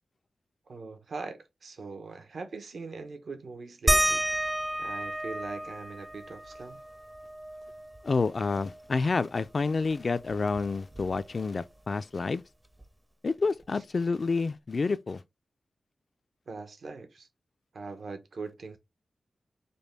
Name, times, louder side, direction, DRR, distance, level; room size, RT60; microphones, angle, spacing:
voice 1, 0.7-4.2 4.8-6.8 13.7-13.8 16.5-17.3 17.7-18.8, right 4 dB, 70° right, 0.8 m, -41 dB
sound 1, 3.9-9.0 9.4-9.5 9.8-11.5 12.8-12.9 13.6-13.7, right 1 dB, 15° right, 0.5 m, -32 dB
voice 2, 8.0-12.4 13.2-15.2, left 4 dB, 55° left, 0.3 m, -29 dB
5.2 x 2.2 x 3.2 m
cardioid pair, 65°, 0 cm